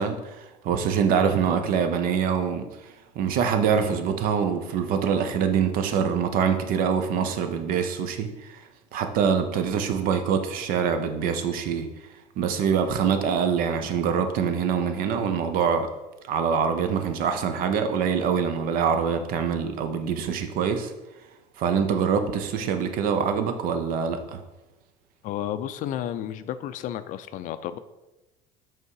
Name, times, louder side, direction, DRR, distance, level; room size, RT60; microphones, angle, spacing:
voice 1, 0.0-8.6 8.9-11.9 12.4-15.9 16.3-20.9 21.6-24.4, right 7 dB, 60° right, 7 dB, 0.7 m, -25 dB
voice 2, 25.2-27.8, left 11 dB, 50° left, 12 dB, 0.4 m, -32 dB
5.6 x 3.6 x 4.7 m, 1.0 s
cardioid pair, 120°, 17 cm